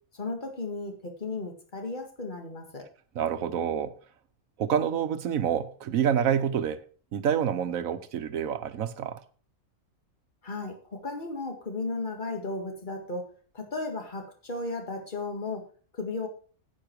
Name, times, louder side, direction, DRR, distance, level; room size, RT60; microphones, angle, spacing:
voice 1, 0.1-2.8 10.4-13.3 13.5-15.6 15.9-16.3, left 3 dB, 35° left, 2.0 m, -35 dB
voice 2, 3.1-4.0 4.6-6.8 7.1-9.2, right 8 dB, 85° right, 1.3 m, -27 dB
9.9 x 8.5 x 4.6 m
omnidirectional pair, 1.4 m